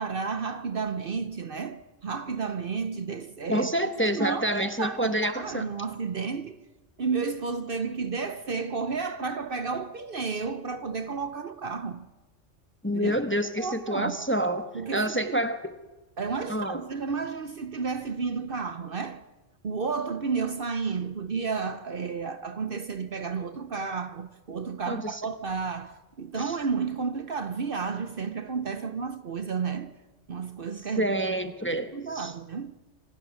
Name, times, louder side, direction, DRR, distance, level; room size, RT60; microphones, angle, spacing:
voice 1, 0.0-3.7 4.1-6.6 7.0-12.1 12.9-13.2 13.6-14.2 14.7-15.4 16.2-19.2 19.6-29.9 30.3-31.1 31.7-32.9, right 5 dB, 50° right, 1.0 m, -32 dB
voice 2, 3.5-5.6 12.8-15.7 16.5-16.8 24.9-25.2 26.3-26.6 31.0-32.3, right 1 dB, 10° left, 1.0 m, -28 dB
26.0 x 17.5 x 6.4 m
omnidirectional pair, 1.3 m